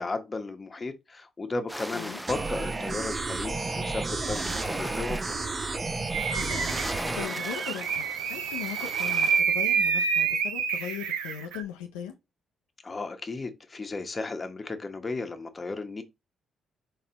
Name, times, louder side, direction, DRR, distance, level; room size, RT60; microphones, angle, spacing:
voice 1, 0.0-5.2 12.8-16.0, left 3 dB, 30° left, 1.0 m, -34 dB
sound 1, 1.7-9.4, equal, ahead, 0.6 m, -40 dB
sound 2, 2.3-7.3, right 3 dB, 35° right, 0.8 m, -32 dB
sound 3, 6.1-11.6, right 6 dB, 80° right, 0.6 m, -28 dB
voice 2, 6.3-6.8 7.1-12.1, left 9 dB, 85° left, 0.5 m, -38 dB
4.2 x 3.2 x 3.9 m
hypercardioid pair, 50°, 0 cm